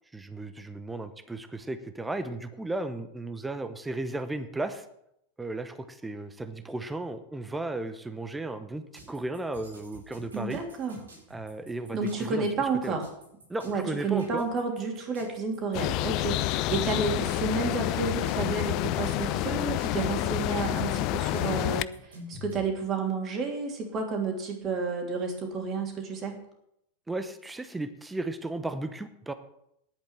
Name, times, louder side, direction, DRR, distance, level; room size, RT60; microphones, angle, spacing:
voice 1, 0.1-4.8 5.4-10.6 11.3-13.0 13.5-14.4 27.1-29.3, right 2 dB, 10° right, 10 dB, 0.9 m, -35 dB
sound 1, 8.9-22.7, equal, 75° right, 5.5 m, -50 dB
voice 2, 10.3-11.0 11.9-13.1 13.6-26.4, right 4 dB, 30° right, 3 dB, 3.1 m, -31 dB
sound 2, 15.7-21.8, left 16 dB, 40° left, 0.4 m, -28 dB
10.5 x 8.6 x 7.5 m, 0.76 s
figure-of-eight pair, 90°, 0 cm